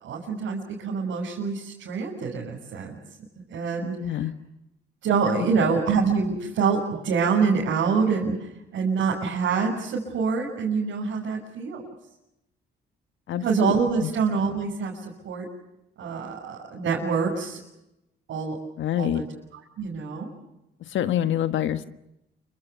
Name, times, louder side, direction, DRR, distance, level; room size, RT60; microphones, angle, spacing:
voice 1, 0.0-3.0 3.5-3.9 5.0-11.8 13.4-15.5 16.0-17.6 18.3-18.6 19.0-19.2 19.8-20.3, right 5 dB, 75° right, -3 dB, 6.6 m, -26 dB
voice 2, 3.8-4.3 5.6-5.7 13.3-13.7 14.0-14.1 18.8-19.2 20.8-21.9, left 11 dB, 75° left, 11 dB, 1.5 m, -26 dB
28.5 x 25.5 x 7.0 m, 0.88 s
cardioid pair, 90°, 20 cm